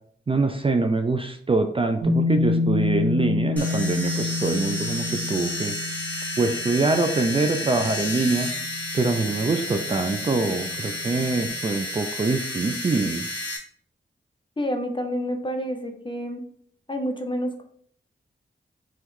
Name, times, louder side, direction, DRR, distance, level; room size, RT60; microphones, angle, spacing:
voice 1, 0.3-5.8 6.4-8.5 8.9-13.2, right 3 dB, 30° right, 6 dB, 0.3 m, -24 dB
sound 1, 2.0-11.5, left 3 dB, 80° right, 1.5 m, -29 dB
sound 2, 3.6-13.6, left 1 dB, 10° left, 1.3 m, -32 dB
voice 2, 14.6-16.4 16.9-17.6, equal, 25° left, 4 dB, 0.7 m, -28 dB
3.0 x 3.0 x 3.8 m, 0.62 s
cardioid pair, 55°, 20 cm